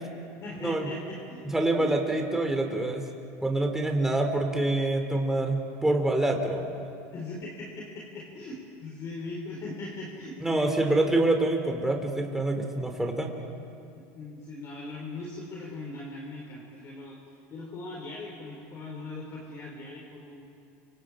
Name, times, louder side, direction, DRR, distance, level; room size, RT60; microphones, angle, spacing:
voice 1, 0.4-2.2 7.1-11.0 13.9-20.5, left 2 dB, 40° left, -2 dB, 4.5 m, -40 dB
voice 2, 1.5-3.1 3.4-6.8 10.4-13.3, right 2 dB, 5° right, 3 dB, 3.1 m, -26 dB
29.5 x 26.0 x 5.0 m, 2.5 s
supercardioid pair, 115°, 7 cm